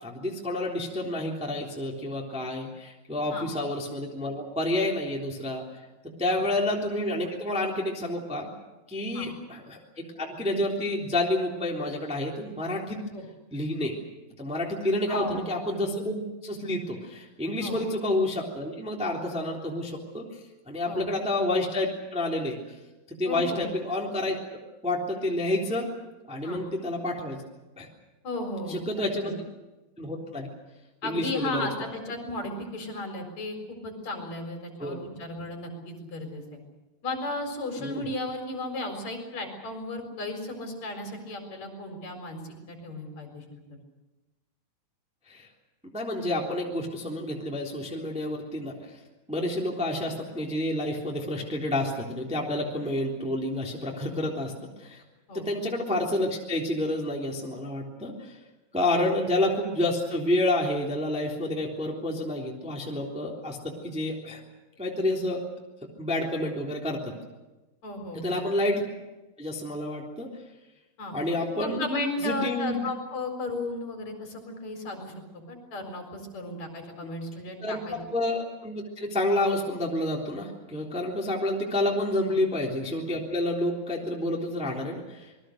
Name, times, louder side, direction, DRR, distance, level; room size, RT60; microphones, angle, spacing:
voice 1, 0.0-5.6 6.2-8.5 8.9-13.0 13.5-13.9 14.4-20.3 20.7-22.6 23.1-24.4 24.8-25.9 26.3-27.4 27.8-27.9 28.7-29.4 30.0-30.5 31.0-31.7 34.8-35.0 37.8-38.1 45.3-45.5 45.9-49.0 49.3-54.5 54.8-55.0 55.3-58.4 58.7-64.4 64.8-65.4 66.0-67.1 68.1-68.8 69.4-70.3 71.1-71.8 72.2-72.8 77.6-85.3, left 1 dB, ahead, -2 dB, 2.7 m, -29 dB
voice 2, 15.1-15.4 17.6-17.8 20.9-21.1 23.3-23.7 26.4-26.6 28.2-29.3 31.0-36.4 37.0-43.8 55.3-55.5 58.8-59.0 67.8-68.4 71.0-71.2 71.5-75.1 75.5-78.0 82.2-82.4, left 2 dB, 45° left, 4 dB, 5.4 m, -35 dB
27.5 x 21.5 x 6.5 m, 1.1 s
omnidirectional pair, 4.7 m